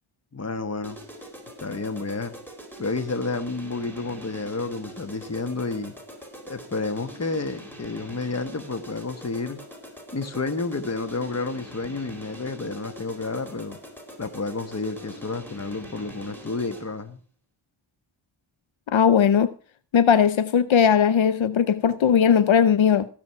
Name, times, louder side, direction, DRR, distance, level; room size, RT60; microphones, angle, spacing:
voice 1, 0.3-1.0 1.6-2.3 2.8-5.9 6.4-9.6 10.1-13.8 14.2-17.2, left 3 dB, 35° left, 1.4 m, -30 dB
sound 1, 0.8-17.0, equal, 5° left, 4.1 m, -43 dB
voice 2, 18.9-19.5 19.9-23.1, left 7 dB, 80° left, 0.7 m, -18 dB
16.5 x 7.1 x 5.8 m
wide cardioid pair, 65°, 46 cm